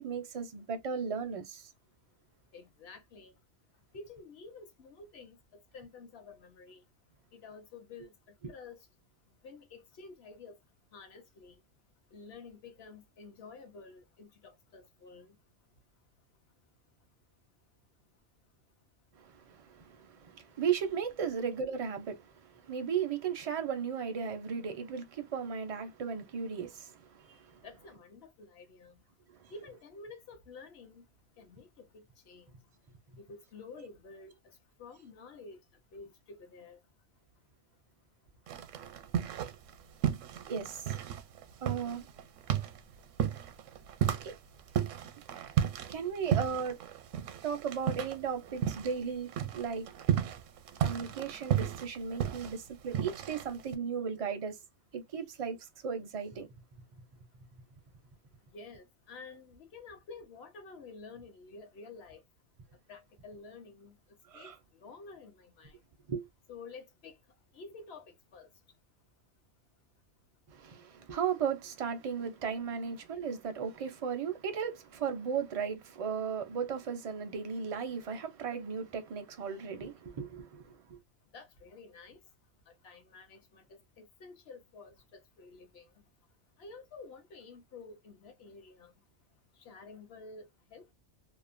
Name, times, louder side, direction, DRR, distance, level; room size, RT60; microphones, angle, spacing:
voice 1, 0.0-1.7 19.2-27.6 29.3-29.5 40.5-40.9 41.6-42.1 44.2-44.3 45.9-46.8 47.4-49.9 50.8-54.6 54.9-55.6 55.8-56.5 64.3-64.6 66.1-66.3 70.5-81.0, right 6 dB, 45° right, 0.4 m, -36 dB
voice 2, 2.5-3.3 3.9-5.4 5.7-6.8 7.3-8.8 9.4-10.6 10.9-11.5 12.1-15.4 27.6-29.0 29.5-31.0 31.4-32.5 33.2-35.6 35.9-36.8 58.5-62.2 62.9-64.0 64.3-64.5 64.8-65.8 66.5-67.1 67.5-68.5 81.3-82.2 82.7-85.9 86.6-88.9 89.6-90.9, left 4 dB, 60° left, 1.0 m, -50 dB
sound 1, 38.5-39.7 40.0-49.0 49.3-53.7, right 10 dB, 85° right, 0.9 m, -33 dB
2.8 x 2.1 x 2.5 m
omnidirectional pair, 1.3 m